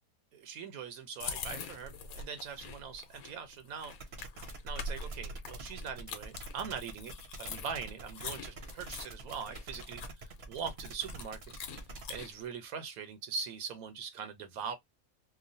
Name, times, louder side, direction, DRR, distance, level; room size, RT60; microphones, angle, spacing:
voice 1, 0.3-3.9 4.6-11.4 12.1-14.8, right 6 dB, 80° right, 1.1 m, -42 dB
sound 1, 1.2-12.5, left 4 dB, 80° left, 1.1 m, -44 dB
sound 2, 3.9-12.2, right 2 dB, 55° right, 0.9 m, -46 dB
3.0 x 2.2 x 2.5 m
omnidirectional pair, 1.5 m